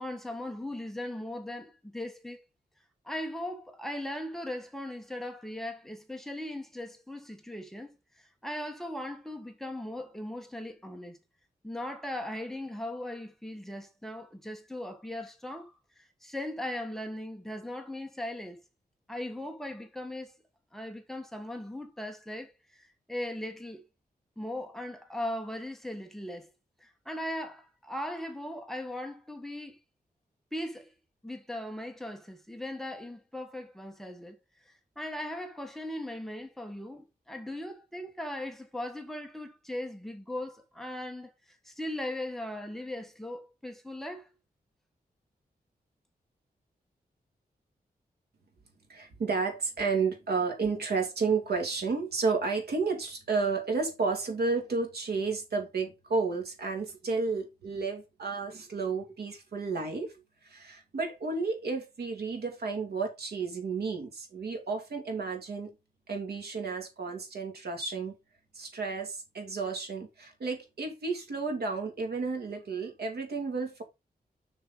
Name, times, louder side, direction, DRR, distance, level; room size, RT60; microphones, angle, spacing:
voice 1, 0.0-2.4 3.0-7.9 8.2-11.2 11.6-15.7 16.0-18.6 19.1-20.3 20.7-23.8 24.4-26.5 26.8-29.8 30.5-30.9 31.2-34.4 34.7-44.3, left 1 dB, ahead, 1.4 m, -38 dB
voice 2, 48.9-60.1 60.4-65.7 66.1-68.1 68.5-73.8, right 4 dB, 85° right, 2.5 m, -32 dB
6.5 x 6.4 x 3.9 m
wide cardioid pair, 140°, 16 cm